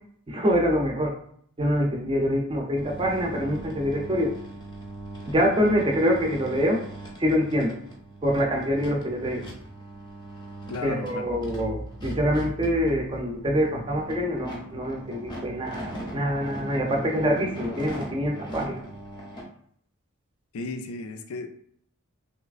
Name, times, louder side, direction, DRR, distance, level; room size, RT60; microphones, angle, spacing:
voice 1, 0.3-1.1 1.6-4.3 5.3-6.8 7.2-7.8 8.2-9.4 10.8-18.8, equal, 25° right, 1 dB, 0.5 m, -25 dB
sound 1, 2.8-19.4, right 1 dB, 20° left, 0.6 m, -40 dB
voice 2, 10.7-11.3 20.5-21.5, left 3 dB, 70° left, 7 dB, 0.4 m, -34 dB
3.2 x 3.0 x 2.4 m, 0.65 s
head